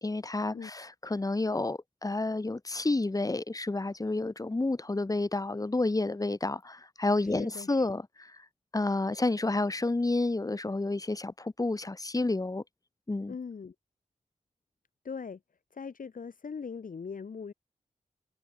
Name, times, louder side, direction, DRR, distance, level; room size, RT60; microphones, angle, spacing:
voice 1, 0.0-8.3 8.7-12.6 13.1-13.3, left 2 dB, 25° left, 1.3 m, -30 dB
voice 2, 7.2-7.8 13.3-13.7 15.0-15.4 15.7-17.5, left 5 dB, 85° left, 4.1 m, -40 dB
wide cardioid pair, 85°, 14 cm